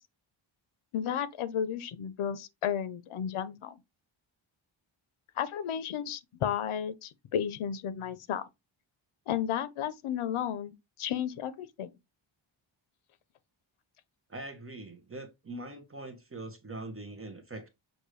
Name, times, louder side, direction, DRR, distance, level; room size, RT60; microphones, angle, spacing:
voice 1, 0.9-3.7 5.4-8.4 9.3-10.7 11.0-11.9, left 9 dB, 80° left, 0.7 m, -33 dB
voice 2, 14.3-17.7, right 2 dB, 25° right, 0.9 m, -42 dB
6.5 x 2.6 x 3.1 m
wide cardioid pair, 140°, 49 cm